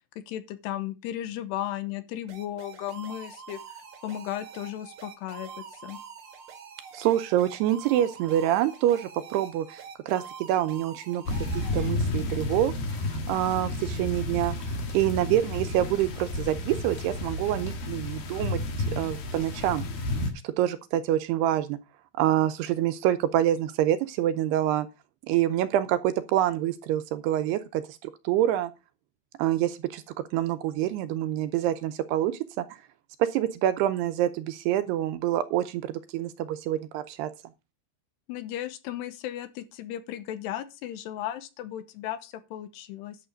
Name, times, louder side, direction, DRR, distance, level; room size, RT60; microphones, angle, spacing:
voice 1, 0.3-6.0 38.3-43.2, left 12 dB, 80° left, 2.8 m, -35 dB
sound 1, 2.3-11.9, right 7 dB, 55° right, 1.5 m, -45 dB
voice 2, 6.9-11.2 11.7-13.0 13.3-14.6 14.9-18.6 18.9-19.8 20.4-21.8 22.2-24.9 25.3-28.7 29.4-30.0 30.3-32.7 33.2-37.3, right 12 dB, 80° right, 2.5 m, -26 dB
sound 2, 11.3-20.3, left 2 dB, 60° left, 3.5 m, -31 dB
11.5 x 6.9 x 5.1 m
omnidirectional pair, 5.1 m